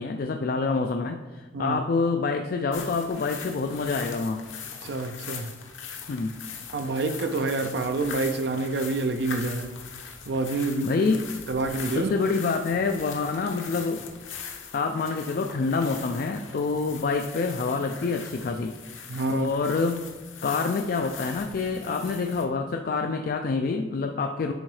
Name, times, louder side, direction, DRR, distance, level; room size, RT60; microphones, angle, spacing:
voice 1, 0.0-4.5 6.1-6.4 10.8-11.3 11.9-14.0 14.7-18.8 19.3-20.1 20.4-24.5, left 4 dB, 50° left, 0.3 m, -27 dB
sound 1, 2.7-22.4, left 6 dB, 85° left, 1.0 m, -41 dB
voice 2, 4.8-5.5 6.7-9.8 10.3-11.0 11.5-12.1 19.1-19.5, right 3 dB, 60° right, 0.4 m, -27 dB
10.5 x 3.8 x 3.2 m
head